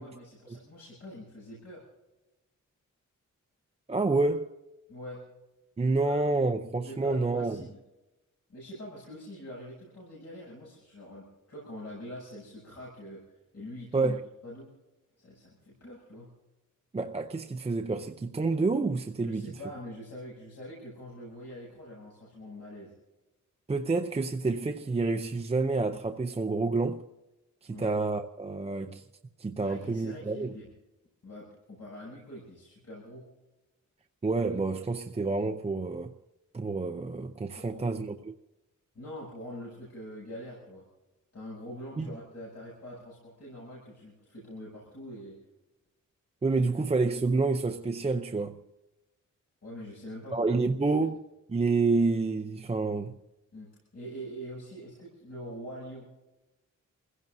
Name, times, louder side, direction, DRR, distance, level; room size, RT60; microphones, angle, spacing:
voice 1, 0.0-1.8 4.9-5.2 6.0-6.2 6.8-7.8 8.5-14.2 14.4-14.7 15.2-16.3 19.2-22.9 27.7-28.0 29.6-30.7 31.2-33.3 37.6-37.9 38.9-40.8 41.3-45.4 46.5-46.6 49.6-50.4 53.5-53.7 53.9-56.1, equal, 55° left, 7.5 m, -44 dB
voice 2, 3.9-4.5 5.8-7.6 13.9-14.2 16.9-19.5 23.7-27.0 27.6-29.0 29.4-30.5 34.2-36.1 36.5-38.3 42.0-42.1 46.4-48.6 50.3-53.2, right 3 dB, 20° right, 0.6 m, -28 dB
28.5 x 16.0 x 2.7 m
wide cardioid pair, 175°, 31 cm